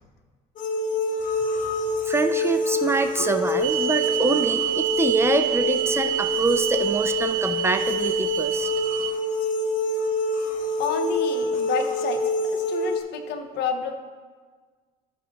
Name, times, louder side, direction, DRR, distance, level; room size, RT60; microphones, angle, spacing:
sound 1, 0.6-13.0, left 1 dB, 50° left, 1.0 m, -26 dB
voice 1, 2.1-8.7, right 3 dB, 15° right, 8 dB, 0.5 m, -25 dB
sound 2, 3.6-9.1, right 15 dB, 50° right, 0.8 m, -28 dB
voice 2, 10.8-12.2 12.5-13.9, left 6 dB, 80° left, 6 dB, 0.8 m, -29 dB
13.5 x 5.4 x 3.0 m, 1.5 s
cardioid pair, 110°, 17 cm